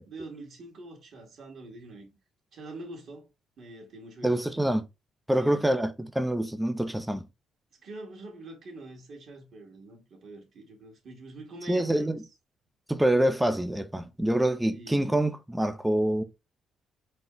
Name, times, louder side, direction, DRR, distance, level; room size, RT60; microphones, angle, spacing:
voice 1, 0.1-2.1 2.5-3.3 3.6-4.7 5.4-5.7 7.8-12.2 14.7-15.3, right 2 dB, 60° right, 1.8 m, -45 dB
voice 2, 4.2-4.8 5.3-7.2 11.7-12.2 12.9-16.2, right 1 dB, 5° right, 0.5 m, -26 dB
4.1 x 2.3 x 3.8 m
cardioid pair, 90°, 0 cm